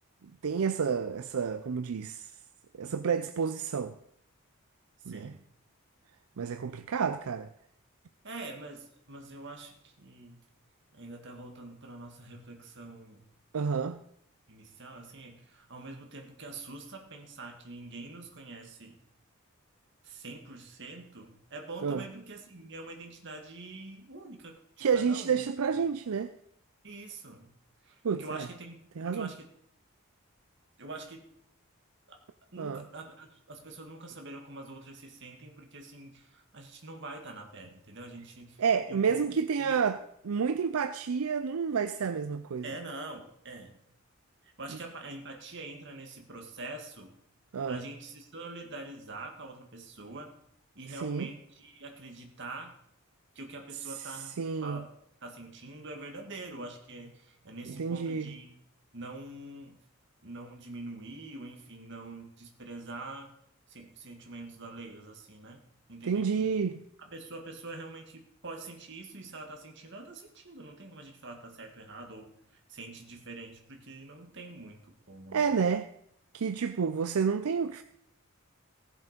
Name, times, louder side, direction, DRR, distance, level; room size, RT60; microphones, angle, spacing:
voice 1, 0.4-2.3 2.8-4.0 5.1-5.3 6.4-7.5 13.5-14.0 21.8-22.0 24.8-26.3 28.0-28.5 29.0-29.3 32.6-32.8 38.6-40.0 40.2-42.6 47.5-47.8 50.9-51.3 54.4-54.8 57.7-58.3 66.0-66.8 75.3-75.9 76.3-77.8, right 6 dB, 80° right, 0.5 m, -29 dB
voice 2, 5.1-5.5 8.2-10.4 10.9-13.2 14.5-19.0 20.0-25.4 25.7-25.8 26.8-27.5 27.8-29.5 30.8-31.3 32.1-32.2 32.5-38.6 38.9-39.8 42.6-43.7 44.4-47.1 47.7-50.3 50.8-52.7 53.4-54.4 54.6-54.9 55.2-58.5 58.9-59.8 60.2-63.3 63.7-65.6 65.9-66.6 67.1-72.3 72.7-75.5, right 2 dB, 55° right, 1.9 m, -45 dB
16.0 x 7.3 x 5.2 m
head